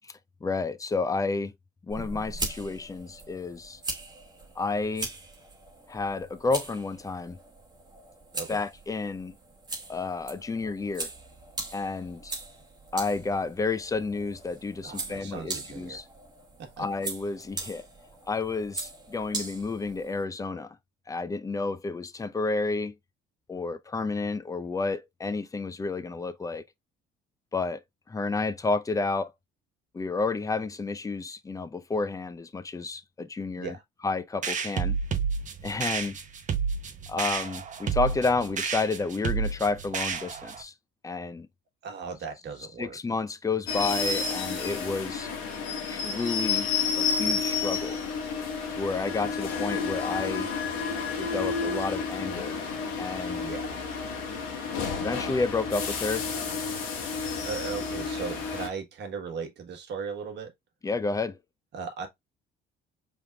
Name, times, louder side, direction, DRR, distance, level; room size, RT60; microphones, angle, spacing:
voice 1, 0.0-1.5 1.8-3.8 4.6-5.1 5.9-7.4 8.5-9.4 9.9-11.1 11.7-12.3 12.9-16.0 16.8-17.8 18.3-20.8 21.1-23.0 23.5-26.6 27.5-27.8 28.1-29.3 29.9-33.8 34.0-35.0 35.6-36.2 37.1-40.7 41.0-41.5 42.8-45.3 45.9-46.7 47.0-48.0 48.8-50.5 51.2-52.6 53.0-53.5 55.0-56.3 60.8-61.4, left 3 dB, 15° left, 0.5 m, -30 dB
sound 1, 1.9-20.2, right 3 dB, 20° right, 1.2 m, -40 dB
voice 2, 14.8-16.0 16.6-16.9 33.6-33.8 41.8-43.0 49.2-49.3 53.4-53.8 57.3-60.5 61.7-62.1, right 5 dB, 60° right, 1.4 m, -37 dB
sound 2, 34.4-40.6, right 6 dB, 40° right, 0.8 m, -30 dB
sound 3, 43.7-58.7, left 5 dB, 85° left, 1.3 m, -31 dB
4.5 x 3.5 x 2.3 m
cardioid pair, 100°, 20 cm